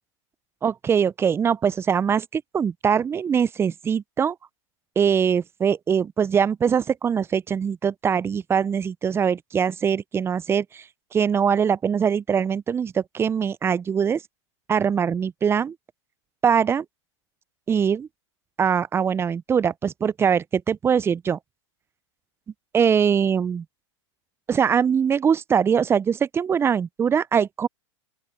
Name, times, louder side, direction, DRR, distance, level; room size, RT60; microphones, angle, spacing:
voice 1, 0.6-4.4 5.0-10.8 11.1-14.2 14.7-15.8 16.4-16.8 17.7-18.1 18.6-21.4 22.7-23.6 24.5-27.7, right 7 dB, 15° right, 0.4 m, -22 dB
open air
hypercardioid pair, 105°, 16 cm